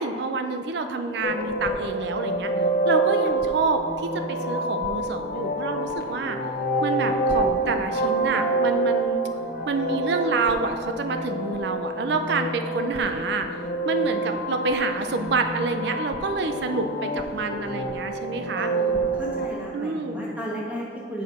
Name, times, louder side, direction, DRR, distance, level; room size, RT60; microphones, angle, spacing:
voice 1, 0.0-2.5 2.9-6.4 6.8-9.2 9.7-13.6 13.8-18.7 19.7-20.2, right 3 dB, 60° right, 7 dB, 0.4 m, -27 dB
sound 1, 1.2-19.5, right 2 dB, 55° left, 0.7 m, -27 dB
voice 2, 16.3-17.6 18.5-21.2, equal, 5° right, -5 dB, 1.6 m, -35 dB
7.2 x 4.7 x 5.4 m, 2.2 s
head